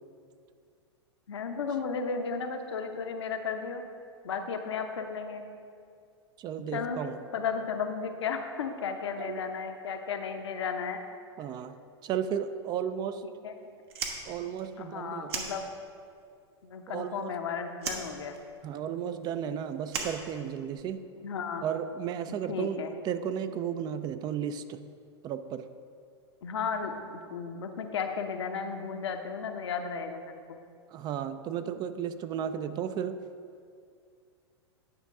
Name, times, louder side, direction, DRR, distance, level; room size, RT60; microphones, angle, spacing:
voice 1, 1.3-3.8 4.2-5.4 6.7-7.0 7.3-11.0 13.4-13.5 14.8-15.7 16.6-18.4 21.2-21.6 22.5-22.9 26.4-30.6, left 5 dB, 75° left, 5 dB, 0.8 m, -34 dB
voice 2, 6.4-7.2 9.2-9.4 11.4-11.8 12.0-13.2 14.3-15.3 16.9-17.3 18.6-21.1 21.6-24.8 25.2-25.6 30.9-33.2, right 8 dB, 30° right, 11 dB, 0.3 m, -34 dB
Fire, 13.8-16.2 16.4-17.4 17.8-20.9, right 5 dB, 65° right, 1.1 m, -38 dB
9.5 x 5.1 x 3.6 m, 2.3 s
hypercardioid pair, 105°, 14 cm